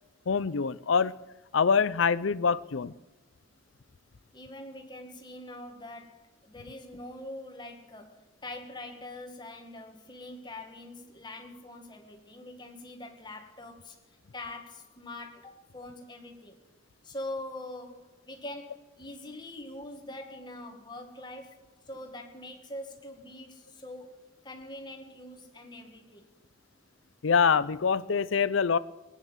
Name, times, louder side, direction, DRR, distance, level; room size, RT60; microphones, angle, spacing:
voice 1, 0.3-1.1 1.5-2.9 27.2-28.8, left 6 dB, 75° left, 17 dB, 0.6 m, -25 dB
voice 2, 4.3-14.0 14.3-16.6 17.0-21.6 21.9-24.1 24.4-26.3, left 1 dB, 20° left, 3 dB, 1.9 m, -43 dB
19.5 x 9.6 x 7.3 m, 1.1 s
head